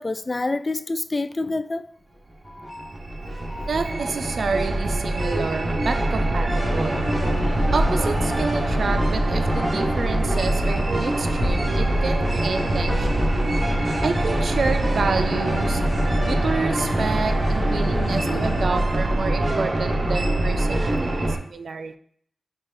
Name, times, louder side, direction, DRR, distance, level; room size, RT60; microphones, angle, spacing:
voice 1, 0.0-1.9 2.5-2.9 3.3-3.7, left 2 dB, 35° left, 0.3 m, -28 dB
sound 1, 2.4-21.4, right 1 dB, 45° right, 0.8 m, -24 dB
voice 2, 3.6-13.8 14.0-22.0, right 4 dB, 80° right, 0.3 m, -29 dB
sound 2, 6.6-18.7, left 1 dB, 85° left, 1.1 m, -30 dB
5.6 x 2.4 x 3.1 m
cardioid pair, 50°, 0 cm